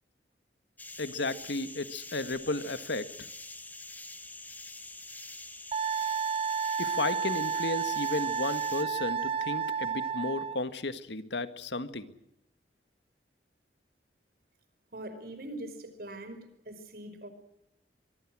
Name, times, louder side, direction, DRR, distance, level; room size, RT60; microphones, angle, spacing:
sound 1, 0.8-8.8, left 3 dB, 10° left, 1.6 m, -45 dB
voice 1, 1.0-3.3 6.8-12.1, left 2 dB, 80° left, 11 dB, 1.8 m, -34 dB
Wind instrument woodwind instrument, 5.7-10.6, right 6 dB, 30° right, 1.2 m, -31 dB
voice 2, 14.9-17.3, right 1 dB, 60° right, 9 dB, 5.3 m, -42 dB
25.0 x 23.5 x 6.3 m, 0.79 s
head